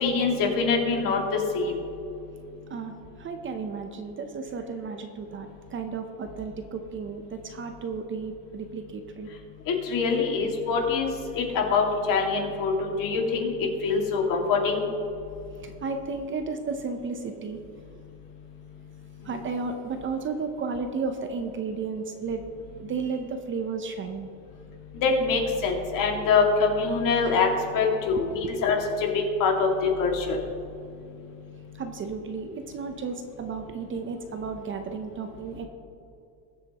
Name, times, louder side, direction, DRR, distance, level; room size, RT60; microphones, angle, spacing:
voice 1, 0.0-1.2 1.6-1.7 9.7-11.1 11.4-12.7 13.0-13.5 13.8-14.8 25.0-27.5 27.7-28.8 29.4-30.2, left 5 dB, 50° left, 1 dB, 2.2 m, -24 dB
voice 2, 2.7-9.3 15.6-17.6 19.2-22.4 22.8-24.3 28.2-28.3 31.8-35.6, right 4 dB, 30° right, 6 dB, 0.7 m, -33 dB
20.5 x 7.7 x 3.0 m, 2.7 s
cardioid pair, 140°, 42 cm